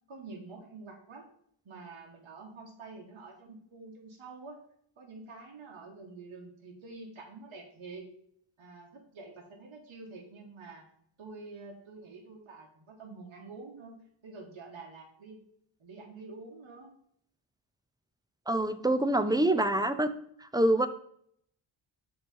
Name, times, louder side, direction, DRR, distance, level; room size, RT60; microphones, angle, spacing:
voice 1, 0.1-1.3 1.6-4.6 5.0-8.1 8.6-10.8 11.2-14.0 14.2-15.4 15.8-16.9 19.1-19.7, right 3 dB, 65° right, -1 dB, 1.4 m, -47 dB
voice 2, 18.5-20.1 20.5-20.9, right 1 dB, 10° right, 10 dB, 0.3 m, -25 dB
7.0 x 3.1 x 5.3 m, 0.68 s
wide cardioid pair, 85°, 50 cm